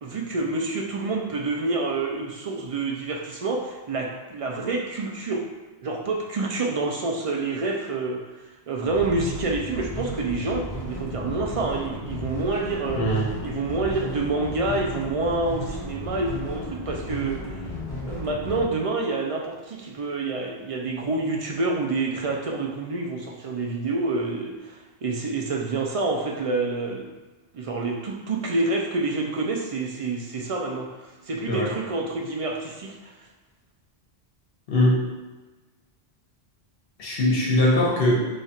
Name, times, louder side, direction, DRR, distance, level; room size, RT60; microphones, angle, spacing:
voice 1, 0.0-5.5 5.8-8.2 8.7-13.1 13.4-17.6 18.1-27.1 27.5-30.9 31.3-33.1, right 3 dB, 55° right, 0 dB, 0.4 m, -28 dB
sound 1, 8.8-18.7, left 1 dB, 25° left, 0.7 m, -34 dB
voice 2, 12.9-13.3 31.5-31.7 34.7-35.0 37.0-38.3, left 1 dB, 65° left, -4 dB, 1.1 m, -21 dB
3.2 x 2.4 x 4.1 m, 1.2 s
omnidirectional pair, 1.1 m